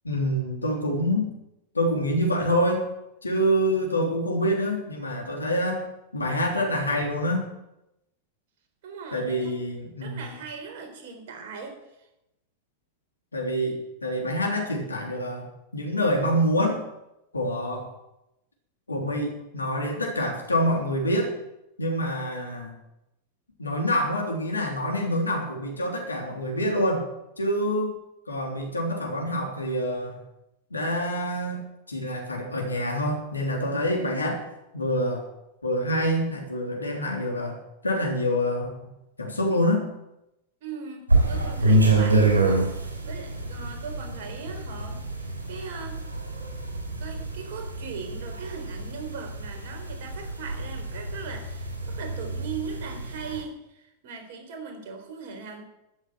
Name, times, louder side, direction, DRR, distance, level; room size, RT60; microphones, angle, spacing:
voice 1, 0.0-1.3 1.7-2.8 3.2-5.8 6.1-7.4 9.1-10.2 13.3-15.4 15.7-16.8 17.3-17.9 18.9-21.3 21.8-22.8 23.6-27.1 27.4-28.0 28.3-30.2 30.7-31.6 31.9-34.4 34.7-35.3 35.6-37.6 37.8-38.7 39.2-39.8, equal, 80° left, 1 dB, 3.5 m, -26 dB
voice 2, 8.8-9.5 10.0-11.8 40.6-46.0 47.0-55.6, right 5 dB, 55° right, 4 dB, 4.1 m, -39 dB
sound 1, 41.1-53.4, right 2 dB, 80° right, 3.8 m, -27 dB
13.5 x 8.2 x 9.1 m, 0.88 s
figure-of-eight pair, 90°, 0 cm